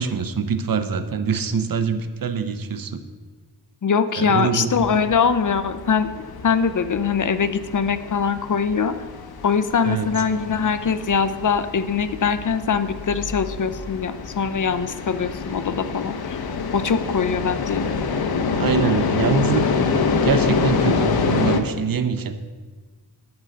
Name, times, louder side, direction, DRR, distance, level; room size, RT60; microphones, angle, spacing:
voice 1, 0.0-3.0 4.2-4.7 9.8-10.1 18.6-22.4, right 6 dB, 55° right, 10 dB, 0.8 m, -24 dB
voice 2, 3.8-6.1 6.4-9.0 9.4-16.4 16.7-17.9, left 6 dB, 50° left, 12 dB, 0.6 m, -22 dB
sound 1, 4.7-21.6, left 5 dB, 65° left, 1.0 m, -26 dB
9.6 x 5.5 x 7.8 m, 1.4 s
wide cardioid pair, 95°, 40 cm